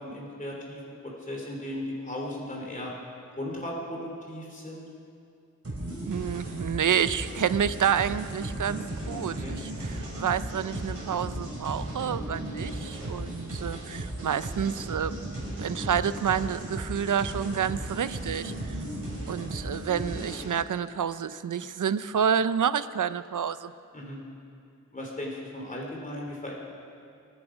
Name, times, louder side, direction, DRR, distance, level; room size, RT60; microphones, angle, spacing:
voice 1, 0.0-2.9 3.4-4.8 8.7-8.8 9.1-10.0 23.9-24.2 24.9-26.5, left 1 dB, 25° left, -2 dB, 3.0 m, -37 dB
sound 1, 5.6-20.4, right 1 dB, 50° right, 5.0 m, -36 dB
voice 2, 6.1-15.2 15.6-18.5 19.3-23.7, right 8 dB, 75° right, 15 dB, 0.5 m, -29 dB
sound 2, 7.4-8.8 9.5-12.7 15.1-16.5 17.3-20.5, left 2 dB, 75° left, 3.4 m, -44 dB
25.5 x 9.8 x 5.0 m, 2.4 s
wide cardioid pair, 85°, 31 cm